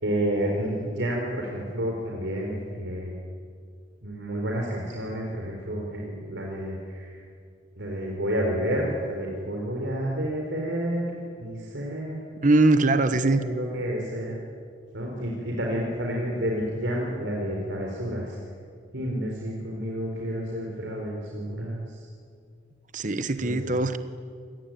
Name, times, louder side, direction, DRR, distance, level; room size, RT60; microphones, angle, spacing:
voice 1, 0.0-3.1 4.0-7.2 7.8-12.2 12.9-14.3 14.9-18.4 18.9-22.1 23.4-23.5, equal, 85° right, -1 dB, 4.3 m, -30 dB
voice 2, 12.4-13.4 22.9-24.0, right 2 dB, 45° right, 11 dB, 1.1 m, -21 dB
27.0 x 20.0 x 9.2 m, 2.2 s
head